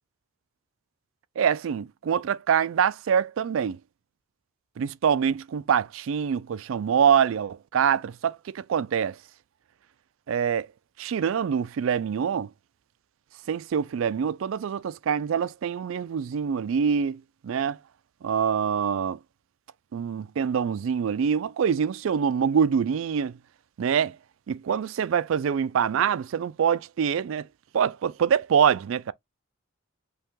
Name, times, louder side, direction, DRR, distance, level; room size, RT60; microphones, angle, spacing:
voice 1, 1.4-3.8 4.8-9.2 10.3-10.7 11.0-12.5 13.5-17.8 18.2-19.2 19.9-23.3 23.8-24.2 24.5-27.5 27.7-29.1, right 7 dB, 65° right, 0.3 m, -25 dB
5.4 x 2.2 x 3.6 m
head